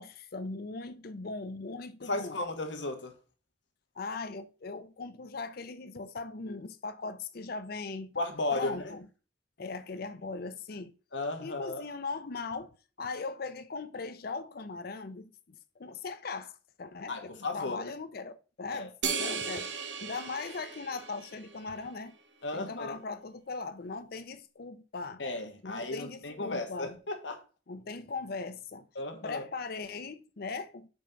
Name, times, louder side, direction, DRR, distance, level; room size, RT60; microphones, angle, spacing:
voice 1, 0.0-2.4 4.0-8.1 8.5-9.1 9.6-10.9 11.4-16.5 16.8-19.7 20.0-22.1 22.5-25.2 25.6-27.0 27.7-28.9 29.2-30.9, left 4 dB, 55° left, 0.6 m, -39 dB
voice 2, 2.0-3.1 8.1-8.9 11.1-11.8 17.1-17.9 18.7-18.9 22.4-23.0 25.2-27.4 28.9-29.5, left 2 dB, 80° left, 1.3 m, -35 dB
sound 1, 19.0-21.7, right 5 dB, 80° right, 1.1 m, -36 dB
5.3 x 4.4 x 5.2 m
head